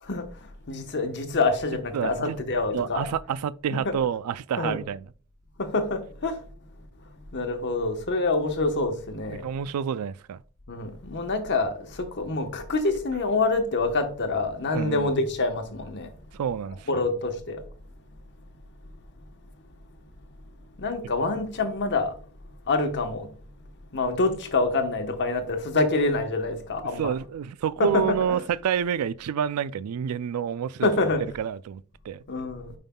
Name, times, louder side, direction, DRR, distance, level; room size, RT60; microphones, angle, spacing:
voice 1, 0.0-3.1 3.7-3.9 4.6-4.8 5.6-6.4 7.3-9.5 10.7-16.1 16.9-17.6 20.8-22.1 22.7-23.3 23.9-27.1 27.8-28.0 30.8-31.2 32.3-32.7, left 3 dB, 55° left, 1.0 m, -26 dB
voice 2, 1.9-2.4 2.7-5.0 9.3-10.4 14.7-15.1 16.3-17.0 27.0-30.9 31.4-32.2, right 8 dB, 80° right, 0.3 m, -28 dB
9.1 x 5.4 x 2.2 m
head